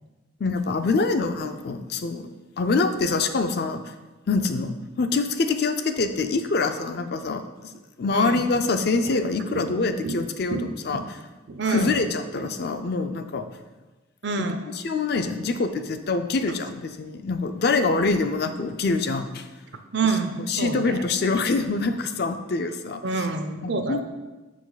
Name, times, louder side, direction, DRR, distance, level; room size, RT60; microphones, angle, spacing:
voice 1, 0.4-2.3 2.6-3.8 4.3-7.4 8.0-10.6 10.8-11.0 11.7-13.5 14.8-19.5 20.5-23.0 23.6-24.0, left 3 dB, 50° left, 8 dB, 0.4 m, -25 dB
voice 2, 8.1-8.5 9.0-9.2 9.5-9.7 10.0-10.2 10.5-10.7 10.9-11.1 11.5-12.0 14.2-14.6 19.9-21.0 23.0-24.0, right 4 dB, 60° right, 7 dB, 0.6 m, -27 dB
6.5 x 5.0 x 3.9 m, 1.2 s
head